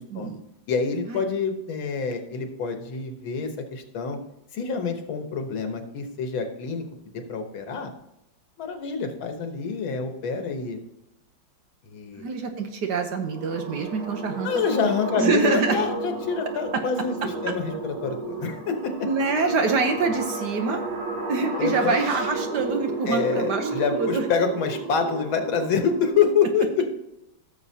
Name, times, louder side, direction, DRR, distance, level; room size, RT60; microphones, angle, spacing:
voice 1, 0.1-0.4 1.1-1.2 12.2-14.5 14.8-14.9 15.2-15.8 19.0-20.8 21.3-24.2, right 4 dB, 60° right, 6 dB, 1.4 m, -25 dB
voice 2, 0.7-4.2 4.5-7.9 8.6-10.8 11.9-12.3 14.4-19.1 21.6-22.0 23.1-26.9, left 5 dB, 75° left, 5 dB, 1.9 m, -27 dB
sound 1, 13.1-26.1, right 3 dB, 90° right, 3.1 m, -32 dB
15.5 x 7.0 x 2.8 m, 0.86 s
omnidirectional pair, 2.2 m